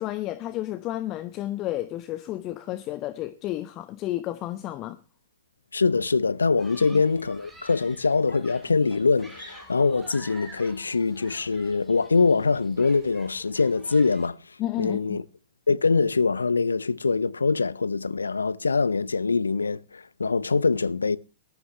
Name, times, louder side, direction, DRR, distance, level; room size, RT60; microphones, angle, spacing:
voice 1, 0.0-5.0 6.9-7.0 14.6-15.2, left 14 dB, 35° left, 0.9 m, -31 dB
voice 2, 5.7-14.4 14.8-15.2 15.7-21.2, left 4 dB, 80° left, 0.7 m, -23 dB
Human group actions, 6.6-14.3, right 2 dB, 5° right, 4.1 m, -49 dB
19.0 x 13.5 x 3.2 m
figure-of-eight pair, 110°, 0 cm